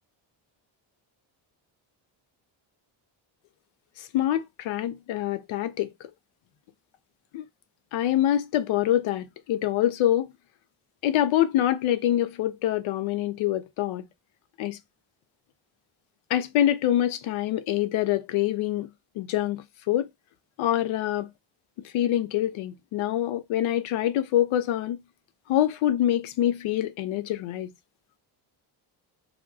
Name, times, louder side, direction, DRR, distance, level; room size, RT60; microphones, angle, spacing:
voice 1, 4.0-5.9 7.3-7.4 7.9-10.3 11.0-14.1 14.6-14.8 16.3-18.9 19.2-20.1 20.6-21.3 21.9-25.0 25.5-27.7, left 12 dB, 75° left, 0.6 m, -25 dB
2.3 x 2.1 x 3.4 m
cardioid pair, 90°, 48 cm